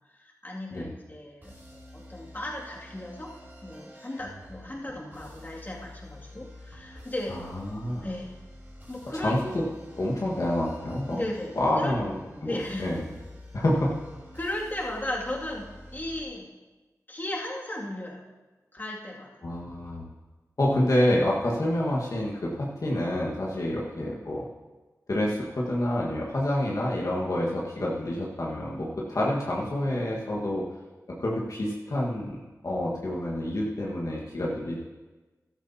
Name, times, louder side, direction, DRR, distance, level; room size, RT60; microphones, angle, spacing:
voice 1, 0.1-3.3 3.6-7.4 8.0-8.3 8.9-9.3 11.1-12.0 12.5-12.8 14.3-16.5 17.1-18.2 18.7-19.4 23.5-23.6, left 1 dB, 30° left, -4 dB, 2.4 m, -36 dB
sound 1, 1.4-16.2, left 1 dB, 30° right, 3.8 m, -48 dB
voice 2, 7.5-8.0 9.1-9.6 9.9-11.2 11.5-12.5 12.8-13.0 13.5-13.9 19.4-20.0 20.6-24.5 25.1-30.7 31.2-34.8, left 1 dB, 60° left, -4 dB, 1.6 m, -28 dB
14.5 x 12.0 x 2.8 m, 1.2 s
wide cardioid pair, 60°, 6 cm